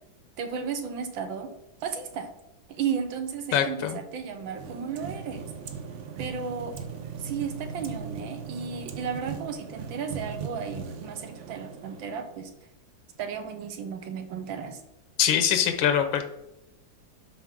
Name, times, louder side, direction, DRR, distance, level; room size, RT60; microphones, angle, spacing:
voice 1, 0.4-1.5 1.8-2.3 2.7-5.5 6.2-6.8 7.2-12.5 13.2-14.8, right 6 dB, 85° right, 6 dB, 1.7 m, -34 dB
voice 2, 3.5-4.0 15.2-16.3, left 9 dB, 90° left, 7 dB, 1.6 m, -23 dB
sound 1, 4.2-12.5, right 6 dB, 55° right, 0.8 m, -39 dB
12.0 x 4.4 x 3.8 m, 0.93 s
omnidirectional pair, 2.1 m